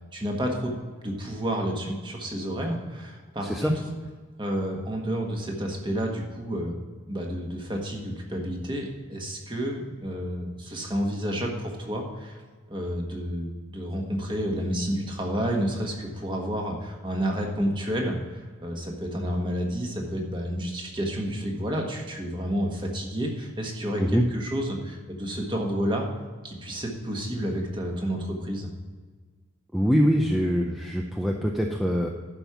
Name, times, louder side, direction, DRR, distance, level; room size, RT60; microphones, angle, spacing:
voice 1, 0.1-0.7 1.0-3.7 4.4-6.8 7.1-12.4 12.7-26.1 26.4-28.7, equal, 20° right, 0 dB, 1.5 m, -30 dB
voice 2, 3.4-3.7 24.0-24.2 29.7-32.1, equal, ahead, 1 dB, 0.5 m, -24 dB
11.5 x 5.3 x 5.9 m, 1.5 s
head